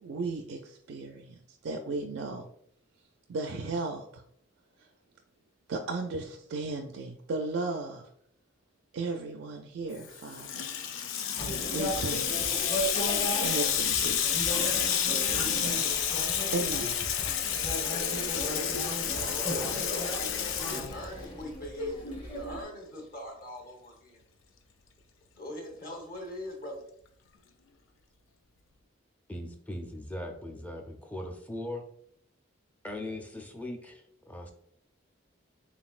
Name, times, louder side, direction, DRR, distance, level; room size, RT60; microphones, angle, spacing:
voice 1, 0.0-2.5 3.3-4.2 4.8-4.9 5.7-8.1 8.9-10.7 11.0-11.1 11.7-12.6 13.4-16.0 16.5-17.0, right 3 dB, 75° right, 3 dB, 0.4 m, -36 dB
Water tap faucet / Sink (filling or washing), 10.0-21.4, left 8 dB, 80° left, 0.4 m, -30 dB
sound 1, 11.4-22.6, equal, 25° left, 0.9 m, -36 dB
voice 2, 17.8-18.8 19.1-24.2 25.3-26.9, left 1 dB, 45° left, 0 dB, 1.1 m, -42 dB
voice 3, 29.3-31.8 32.8-34.5, left 1 dB, 10° left, 3 dB, 0.4 m, -39 dB
4.0 x 3.6 x 2.4 m, 0.67 s
head